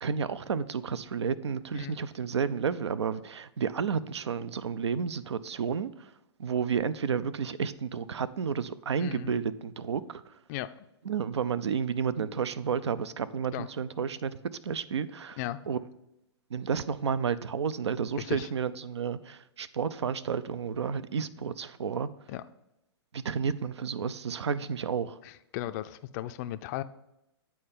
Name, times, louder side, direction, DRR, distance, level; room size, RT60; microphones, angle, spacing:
voice 1, 0.0-6.1 6.4-10.2 11.1-14.4 14.6-15.4 15.7-15.8 16.5-22.1 23.1-25.2, right 6 dB, 85° right, 16 dB, 0.5 m, -31 dB
voice 2, 9.0-9.3 10.5-10.7 13.5-13.7 15.4-15.6 18.2-18.5 22.3-22.4 25.2-26.8, left 14 dB, 40° left, 11 dB, 0.3 m, -36 dB
8.5 x 4.4 x 5.4 m, 0.87 s
hypercardioid pair, 120°, 14 cm